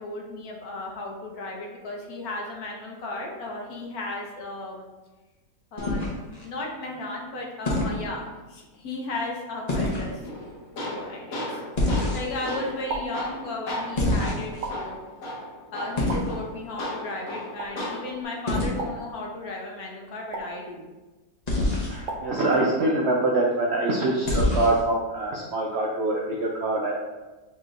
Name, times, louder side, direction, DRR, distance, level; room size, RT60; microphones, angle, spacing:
voice 1, 0.0-4.9 5.7-10.2 10.9-11.6 12.1-15.0 15.7-20.9, left 2 dB, 70° left, 0 dB, 1.2 m, -35 dB
sound 1, 5.8-6.4 7.6-8.0 9.7-10.1 11.8-12.5 14.0-14.7 16.0-16.3 18.5-18.7 21.5-22.0 24.2-24.8, left 2 dB, 35° left, 0.7 m, -25 dB
Tools, 10.2-18.2, left 1 dB, 90° left, 1.5 m, -36 dB
sound 2, 12.9-13.3 14.6-15.0 16.1-16.4 17.6-17.9 18.8-19.2 20.3-20.7 22.1-22.5, right 3 dB, 90° right, 1.3 m, -35 dB
voice 2, 21.6-26.9, right 2 dB, 70° right, -2 dB, 0.6 m, -25 dB
6.6 x 3.0 x 2.5 m, 1.2 s
omnidirectional pair, 1.7 m